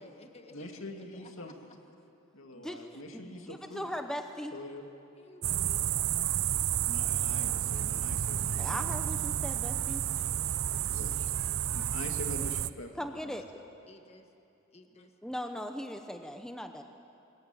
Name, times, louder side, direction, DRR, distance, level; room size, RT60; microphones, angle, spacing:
voice 1, 0.0-1.8 5.2-6.2 10.7-11.4 13.9-14.3 14.7-15.1, left 1 dB, 30° left, 5 dB, 1.7 m, -56 dB
voice 2, 0.5-1.5 2.3-3.9 4.5-4.8 6.9-9.0 10.9-11.3 11.7-13.0 13.2-13.4, left 1 dB, 65° left, 3 dB, 2.6 m, -44 dB
voice 3, 2.5-4.5 8.6-10.0 13.0-13.4 15.2-16.8, equal, 5° left, 5 dB, 0.9 m, -39 dB
sound 1, 5.4-12.7, right 11 dB, 70° right, 0.6 m, -31 dB
27.0 x 22.0 x 9.2 m, 2.8 s
head